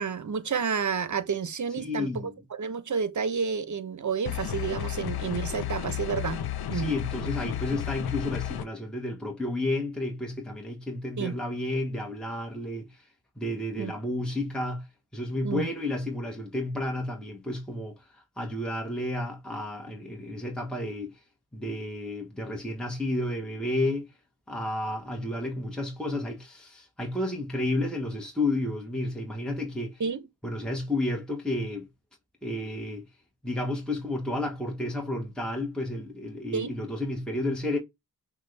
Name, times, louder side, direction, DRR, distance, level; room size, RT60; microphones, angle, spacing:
voice 1, 0.0-6.4 6.7-6.9 11.2-11.3 13.8-13.9 15.4-15.7 30.0-30.2 36.5-36.7, right 6 dB, 50° right, 0.8 m, -30 dB
voice 2, 1.8-2.4 6.7-13.1 13.4-14.9 15.1-21.1 21.5-24.1 24.5-30.0 30.4-31.9 32.4-33.0 33.4-37.8, left 1 dB, ahead, 1.1 m, -31 dB
sound 1, 4.3-8.7, left 11 dB, 70° left, 0.5 m, -33 dB
5.9 x 2.3 x 3.2 m
cardioid pair, 45°, 39 cm